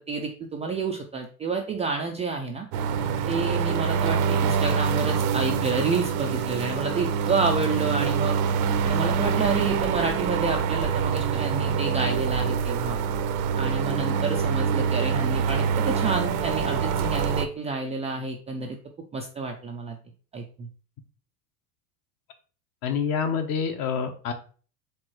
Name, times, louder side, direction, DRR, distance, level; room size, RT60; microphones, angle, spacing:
voice 1, 0.1-2.7 3.3-8.4 8.8-13.0 13.6-18.8 19.1-20.0 20.3-20.7, right 4 dB, 15° right, 1 dB, 0.3 m, -29 dB
sound 1, 2.7-17.5, right 6 dB, 60° right, 0.7 m, -25 dB
voice 2, 22.8-24.3, left 6 dB, 45° left, 6 dB, 1.0 m, -27 dB
4.5 x 3.6 x 3.1 m, 0.40 s
hypercardioid pair, 85°, 46 cm